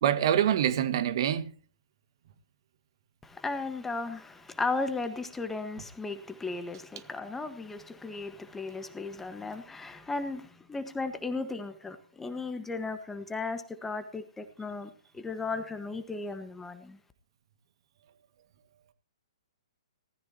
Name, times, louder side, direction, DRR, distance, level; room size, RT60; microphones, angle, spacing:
voice 1, 0.0-1.5, right 10 dB, 50° right, 1.9 m, -25 dB
voice 2, 3.2-17.0, left 3 dB, 10° left, 1.5 m, -36 dB
19.5 x 14.0 x 2.9 m
figure-of-eight pair, 125°, 3 cm